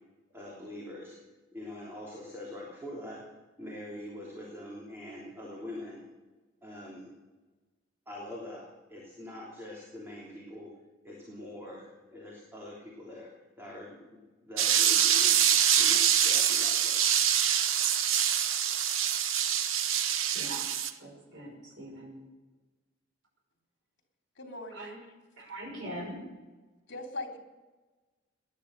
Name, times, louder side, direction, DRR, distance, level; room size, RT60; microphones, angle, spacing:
voice 1, 0.3-1.2 1.5-3.2 3.6-6.0 6.6-7.1 8.1-10.7 11.0-13.3 13.6-15.4 15.8-17.0, left 1 dB, 10° right, -4 dB, 3.3 m, -44 dB
sound 1, 14.6-20.9, right 9 dB, 90° right, 0.9 m, -25 dB
voice 2, 20.3-20.7 21.0-22.2 24.7-24.9 25.4-26.2, right 1 dB, 70° right, -3 dB, 5.7 m, -42 dB
voice 3, 24.4-25.1 26.9-27.4, left 2 dB, 60° left, 3 dB, 3.1 m, -40 dB
19.0 x 11.0 x 6.6 m, 1.2 s
head